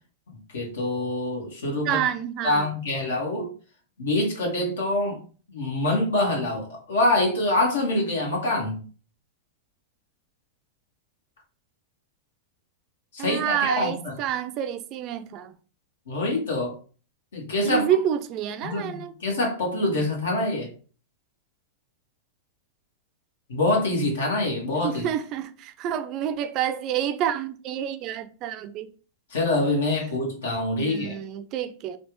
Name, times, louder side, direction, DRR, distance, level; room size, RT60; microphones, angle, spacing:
voice 1, 0.5-2.0 2.4-3.5 4.0-5.2 5.5-8.8 13.1-14.1 16.1-16.7 17.3-17.9 18.6-20.7 23.5-25.1 29.3-31.2, left 2 dB, 80° left, 1.4 m, -25 dB
voice 2, 1.8-2.7 13.2-15.5 17.6-19.1 24.8-28.9 30.8-32.0, right 10 dB, 45° right, 0.4 m, -28 dB
3.3 x 2.4 x 3.0 m
hypercardioid pair, 115°, 0 cm